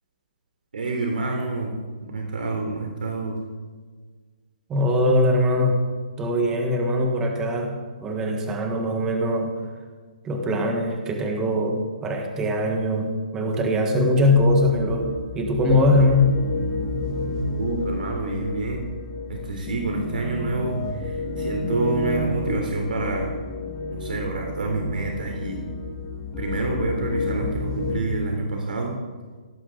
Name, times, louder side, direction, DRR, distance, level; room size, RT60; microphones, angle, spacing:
voice 1, 0.7-1.7 2.0-3.4 17.6-18.8 19.3-23.3 23.9-25.6 26.4-29.0, right 2 dB, 80° right, 1 dB, 3.4 m, -28 dB
voice 2, 4.7-5.8 6.2-9.6 10.2-15.1 15.3-16.4, left 1 dB, 10° right, 2 dB, 1.5 m, -21 dB
sound 1, 14.2-28.0, left 2 dB, 15° left, 1.6 m, -30 dB
17.0 x 15.0 x 3.9 m, 1.5 s
hypercardioid pair, 170°, 5 cm